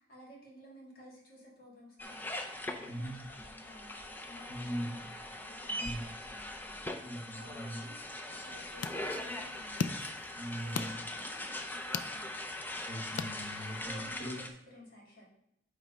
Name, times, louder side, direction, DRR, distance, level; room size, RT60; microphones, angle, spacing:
voice 1, 0.0-7.1 7.4-9.8 10.6-12.4 13.5-15.2, left 1 dB, 55° left, -4 dB, 2.2 m, -54 dB
sound 1, 2.0-14.5, left 1 dB, 10° left, 0.5 m, -41 dB
voice 2, 4.5-4.8 5.8-6.0 7.0-7.8 10.4-11.0 12.8-14.3, equal, 25° left, -7 dB, 1.7 m, -40 dB
sound 2, 8.3-14.0, left 6 dB, 85° left, 0.4 m, -41 dB
8.0 x 3.2 x 5.0 m, 0.76 s
head